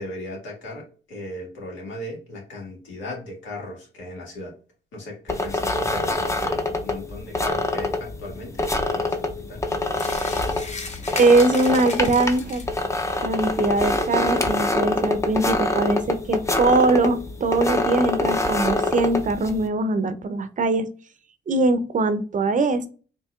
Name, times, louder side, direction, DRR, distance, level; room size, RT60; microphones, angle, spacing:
voice 1, 0.0-4.5 4.9-9.6, left 1 dB, 85° left, -2 dB, 1.7 m, -36 dB
sound 1, 5.3-19.7, left 2 dB, 15° left, 0.6 m, -25 dB
sound 2, 9.9-12.8, left 3 dB, 35° left, 0.9 m, -35 dB
voice 2, 11.2-12.6 13.2-20.9 21.5-22.9, right 2 dB, 40° right, 11 dB, 0.5 m, -21 dB
4.3 x 2.8 x 2.3 m, 0.37 s
cardioid pair, 75°, 19 cm